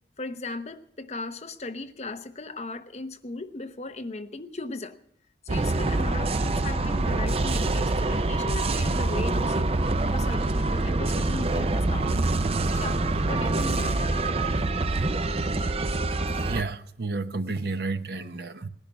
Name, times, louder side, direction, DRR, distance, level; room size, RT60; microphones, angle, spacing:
voice 1, 0.2-5.0 5.4-9.7 10.1-12.2 12.7-14.1, left 2 dB, 40° left, 0.9 m, -37 dB
sound 1, 5.5-16.6, right 2 dB, 35° right, 0.5 m, -25 dB
voice 2, 16.5-18.7, right 3 dB, 60° right, 0.9 m, -31 dB
19.5 x 11.0 x 6.1 m
head